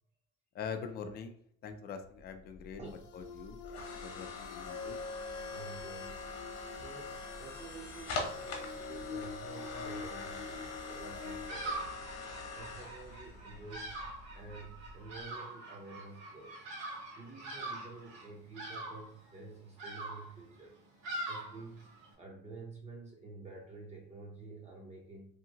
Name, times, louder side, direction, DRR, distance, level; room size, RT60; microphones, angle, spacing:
voice 1, 0.5-1.4 1.6-2.8 3.1-3.6 4.0-5.0, left 6 dB, 30° left, 6 dB, 0.4 m, -43 dB
sound 1, 2.2-15.2, left 3 dB, 50° left, 1.0 m, -43 dB
voice 2, 2.8-3.1 5.5-6.3 6.7-12.0 12.5-14.0 14.3-16.7 17.1-20.7 21.3-21.9 22.2-25.4, right 3 dB, 20° right, -1 dB, 0.5 m, -50 dB
sound 2, 2.9-11.5, left 5 dB, 80° left, 0.7 m, -48 dB
Bird vocalization bird call bird song, 11.2-22.1, right 2 dB, 70° right, 1.2 m, -44 dB
2.8 x 2.6 x 2.8 m, 0.63 s
cardioid pair, 135°, 32 cm